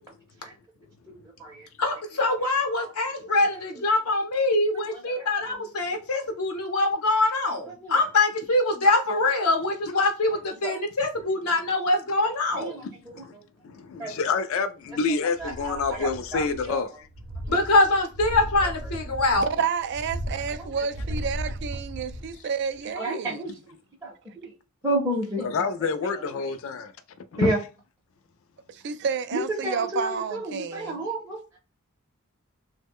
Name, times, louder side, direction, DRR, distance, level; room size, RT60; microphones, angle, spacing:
voice 1, 1.1-1.7 2.8-2.9 3.3-3.4 4.7-5.6 7.8-8.0 10.6-10.8 12.6-13.4 14.0-14.4 15.1-16.8 17.5-17.6 20.6-20.7 22.9-23.6 24.0-24.5 24.8-25.4 26.0-26.2 27.4-27.6 29.3-31.6, right 1 dB, 15° right, 0.6 m, -32 dB
voice 2, 1.8-12.8 17.5-19.5, left 2 dB, 90° left, 0.7 m, -24 dB
voice 3, 12.8-13.3 13.6-17.1 25.4-26.9 27.4-27.5, left 4 dB, 65° left, 0.3 m, -28 dB
sound 1, 15.4-16.8 17.1-22.4 22.8-22.9, equal, 85° right, 0.7 m, -36 dB
voice 4, 19.4-23.4 28.7-31.0, right 6 dB, 50° right, 0.3 m, -30 dB
3.1 x 2.1 x 3.5 m
head